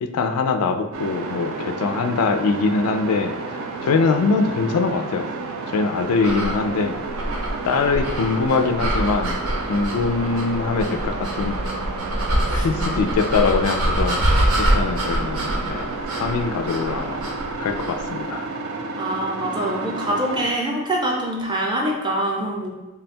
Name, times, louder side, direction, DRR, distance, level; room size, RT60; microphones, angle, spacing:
voice 1, 0.0-5.3 5.7-7.0 7.6-9.4 9.7-11.6 12.5-14.3 14.6-15.9 16.2-17.3 17.6-18.5, left 4 dB, 80° left, 8 dB, 0.3 m, -23 dB
sound 1, 0.9-20.5, right 3 dB, 65° right, 0.4 m, -31 dB
sound 2, 6.2-18.1, right 1 dB, 85° right, 0.9 m, -25 dB
voice 2, 12.5-12.8 19.0-22.7, right 1 dB, 20° right, -1 dB, 0.6 m, -25 dB
3.5 x 2.2 x 4.2 m, 1.1 s
head